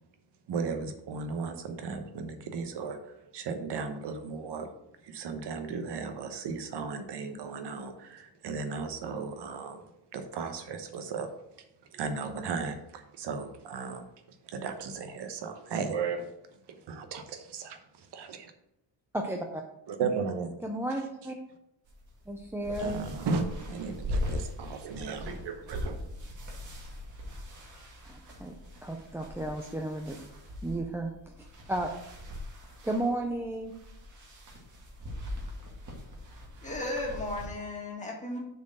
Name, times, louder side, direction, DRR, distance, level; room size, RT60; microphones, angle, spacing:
voice 1, 0.5-3.0 3.3-4.7 5.0-9.8 10.1-11.3 11.9-14.1 14.4-16.3 16.7-18.5 19.9-20.5 22.8-26.0, right 5 dB, 60° right, 7 dB, 1.0 m, -35 dB
voice 2, 19.1-19.6 20.6-21.4 22.3-23.0 28.0-28.5 28.8-30.2 30.6-31.3 31.7-31.9 32.8-33.7, right 1 dB, 5° right, 2 dB, 0.4 m, -33 dB
sound 1, 21.9-37.5, left 1 dB, 40° right, 1.9 m, -40 dB
voice 3, 36.6-38.4, left 2 dB, 15° left, -1 dB, 1.8 m, -35 dB
6.8 x 4.4 x 6.5 m, 0.85 s
cardioid pair, 160°, 46 cm